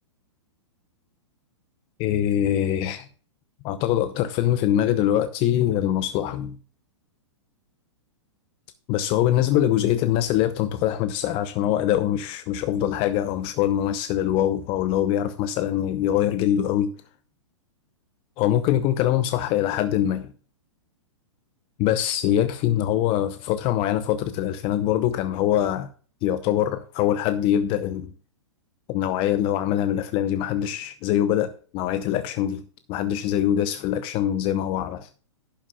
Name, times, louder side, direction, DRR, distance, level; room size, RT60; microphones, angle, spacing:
voice 1, 2.0-3.1 3.6-6.6 8.9-16.9 18.4-20.3 21.8-25.9 26.2-28.1 28.9-32.6 32.9-35.1, left 11 dB, 35° left, 0.8 m, -23 dB
11.5 x 11.0 x 2.3 m
hypercardioid pair, 115°, 16 cm